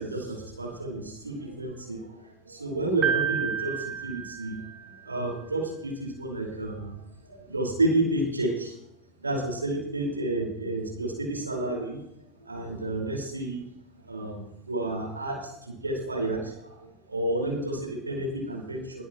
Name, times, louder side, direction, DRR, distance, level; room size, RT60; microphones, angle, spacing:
voice 1, 0.0-8.8 9.2-12.0 12.4-13.7 14.0-19.0, right 2 dB, 85° right, -1 dB, 5.2 m, -31 dB
Piano, 3.0-5.1, right 8 dB, 30° right, 4.1 m, -30 dB
22.5 x 10.5 x 3.2 m, 0.79 s
figure-of-eight pair, 75°, 0 cm